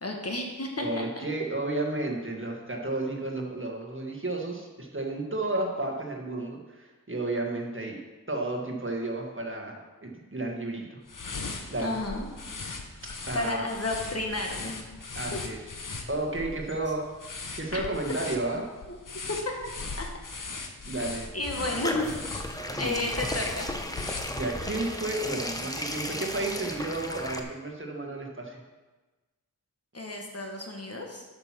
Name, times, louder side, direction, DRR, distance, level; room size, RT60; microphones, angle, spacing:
voice 1, 0.0-1.3 11.8-12.3 13.3-14.8 15.3-15.4 17.7-17.8 18.9-19.0 20.0-20.1 21.3-22.1 22.8-23.7 29.9-31.2, left 2 dB, 45° left, 1 dB, 1.6 m, -32 dB
voice 2, 0.8-8.0 8.3-11.0 11.7-12.0 13.3-13.7 15.1-15.6 16.1-18.6 20.3-20.5 20.8-21.3 22.7-23.2 24.3-28.6, right 2 dB, 35° right, 0 dB, 1.7 m, -32 dB
sound 1, 11.1-24.8, left 3 dB, 65° left, 1.0 m, -39 dB
sound 2, 21.1-27.4, left 1 dB, 10° left, 1.0 m, -35 dB
8.8 x 6.0 x 6.0 m, 1.2 s
wide cardioid pair, 55°, 34 cm